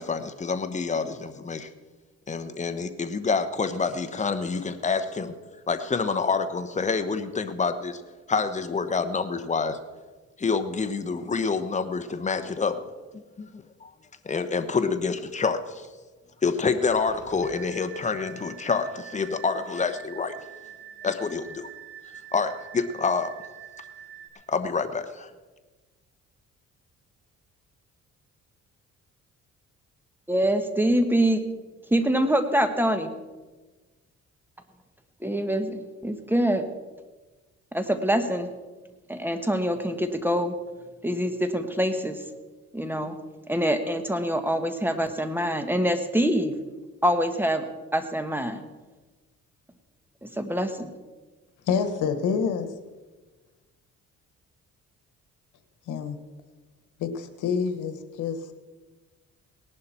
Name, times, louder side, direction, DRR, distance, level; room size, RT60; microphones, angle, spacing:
voice 1, 0.0-1.7 2.3-5.3 5.7-8.0 8.3-9.8 10.4-12.8 13.4-13.5 13.8-13.9 14.2-15.9 16.4-20.3 21.0-21.7 22.3-23.3 24.5-25.3, left 4 dB, 25° left, 9 dB, 1.1 m, -27 dB
sound 1, 16.7-24.3, right 9 dB, 50° right, 2.5 m, -45 dB
voice 2, 30.3-31.4 31.9-33.1 35.2-36.6 37.7-38.5 39.1-40.5 41.0-42.2 42.7-43.1 43.5-46.5 47.0-47.6 47.9-48.6 50.4-50.9, equal, 5° right, 8 dB, 1.4 m, -25 dB
voice 3, 51.7-52.7 55.9-56.2 57.0-58.5, left 6 dB, 85° left, 9 dB, 1.4 m, -27 dB
18.5 x 11.5 x 4.4 m, 1.2 s
cardioid pair, 90°, 30 cm